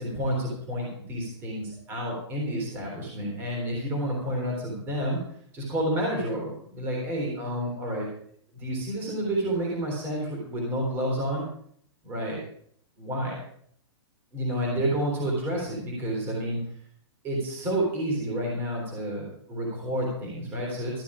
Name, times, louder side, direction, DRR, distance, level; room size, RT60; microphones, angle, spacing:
voice 1, 0.0-5.2 5.5-8.1 8.5-11.4 12.0-12.4 13.0-13.4 14.3-16.6 17.2-21.0, right 1 dB, 15° right, -2 dB, 3.7 m, -30 dB
13.5 x 11.0 x 5.0 m, 0.64 s
hypercardioid pair, 180°, 15 cm